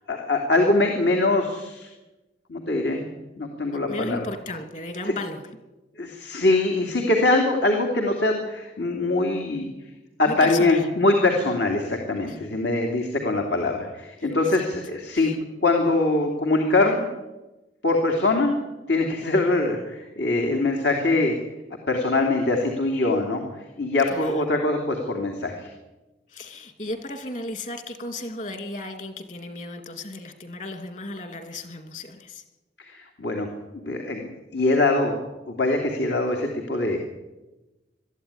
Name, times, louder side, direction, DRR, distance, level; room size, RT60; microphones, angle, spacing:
voice 1, 0.1-1.9 2.5-3.1 3.4-4.3 5.1-5.2 6.0-9.7 10.2-15.3 15.6-17.1 17.8-18.5 18.9-21.4 21.9-23.4 23.8-25.7 32.8-33.5 33.7-35.2 35.5-37.0, left 2 dB, 75° left, 2 dB, 2.9 m, -23 dB
voice 2, 3.9-5.4 10.3-10.9 12.3-12.6 14.5-14.7 15.1-15.3 24.1-24.4 26.3-32.4, left 2 dB, 45° left, 7 dB, 2.8 m, -35 dB
22.5 x 13.5 x 10.0 m, 1.1 s
head